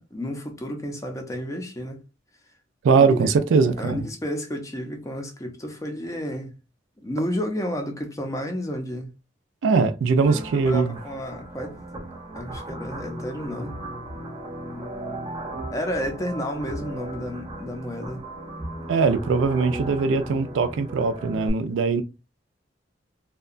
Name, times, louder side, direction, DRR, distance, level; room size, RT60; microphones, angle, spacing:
voice 1, 0.1-2.0 2.9-3.2 3.8-6.6 7.0-9.1 10.2-10.4 10.6-11.8 12.3-13.7 15.7-18.2, equal, 15° left, 0.5 m, -31 dB
voice 2, 2.8-4.0 9.6-11.0 18.9-22.0, right 4 dB, 80° right, 0.3 m, -21 dB
sound 1, 10.2-21.5, right 1 dB, 25° right, 0.6 m, -36 dB
2.7 x 2.2 x 2.4 m
head